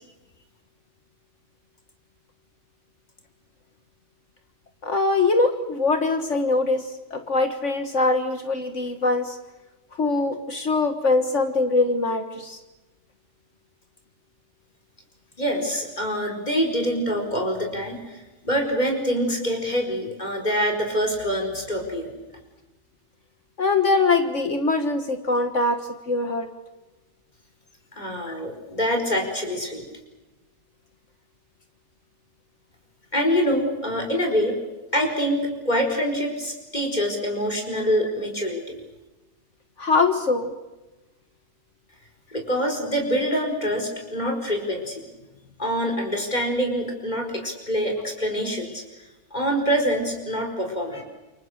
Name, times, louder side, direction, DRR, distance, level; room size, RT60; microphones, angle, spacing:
voice 1, 4.8-9.4 9.9-12.6 23.6-26.5 28.3-28.4 39.8-40.5, left 3 dB, 60° left, 7 dB, 1.9 m, -23 dB
voice 2, 15.4-22.1 28.0-29.8 33.1-34.6 34.9-38.7 42.3-45.1 45.6-48.8 49.3-51.0, equal, 30° left, 3 dB, 5.1 m, -25 dB
29.0 x 24.0 x 6.5 m, 1.1 s
omnidirectional pair, 1.4 m